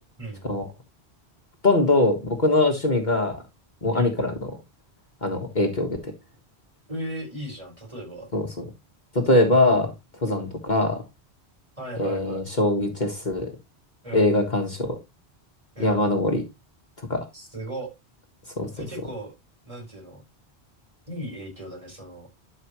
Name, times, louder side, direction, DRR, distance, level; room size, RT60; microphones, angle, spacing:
voice 1, 1.6-3.4 3.8-4.5 5.2-6.1 8.3-8.6 9.1-9.9 10.2-11.0 12.0-13.5 14.1-15.0 15.8-16.4 17.1-17.2 18.6-18.7, left 2 dB, 45° left, 2 dB, 1.6 m, -22 dB
voice 2, 6.9-8.3 10.2-10.4 11.8-12.5 14.0-14.3 15.7-16.0 17.3-17.9 18.8-19.3 19.6-20.2 21.1-22.3, right 1 dB, 30° right, -1 dB, 4.8 m, -37 dB
12.0 x 5.7 x 3.1 m, 0.23 s
omnidirectional pair, 1.1 m